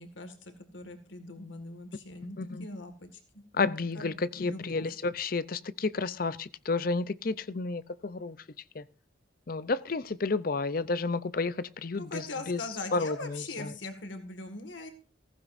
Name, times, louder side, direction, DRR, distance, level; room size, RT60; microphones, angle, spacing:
voice 1, 0.0-3.2 3.6-4.9 12.0-14.9, left 2 dB, 85° left, 8 dB, 1.9 m, -41 dB
voice 2, 3.5-8.4 8.7-8.8 9.5-12.2 12.5-12.6 12.9-13.7, left 3 dB, 50° left, 16 dB, 0.6 m, -31 dB
15.0 x 15.0 x 2.6 m, 0.37 s
head